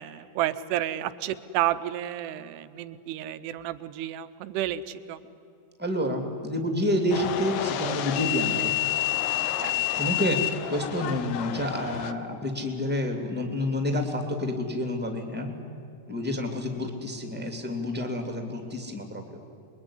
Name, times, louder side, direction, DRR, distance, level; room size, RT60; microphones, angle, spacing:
voice 1, 0.0-5.2 9.6-9.9, right 13 dB, 75° right, 12 dB, 2.7 m, -31 dB
voice 2, 5.8-8.7 10.0-15.5 16.1-19.2, left 1 dB, 5° right, 4 dB, 1.2 m, -29 dB
sound 1, 7.1-12.1, left 13 dB, 90° left, 2.0 m, -29 dB
27.0 x 22.0 x 10.0 m, 2.7 s
omnidirectional pair, 5.3 m